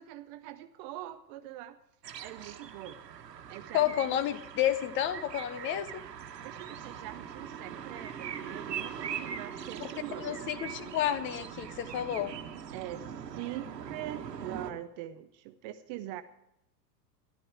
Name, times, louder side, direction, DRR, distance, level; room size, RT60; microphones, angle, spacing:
voice 1, 0.0-1.8 2.2-3.0 3.5-4.2 6.4-10.4 12.7-16.2, right 13 dB, 30° right, 11 dB, 0.5 m, -43 dB
sound 1, 2.0-14.7, right 8 dB, 70° right, 1.4 m, -41 dB
voice 2, 3.7-6.0 9.8-9.9 10.2-12.3, left 11 dB, 25° left, 14 dB, 0.6 m, -30 dB
12.5 x 12.5 x 4.7 m, 0.84 s
figure-of-eight pair, 100°, 50 cm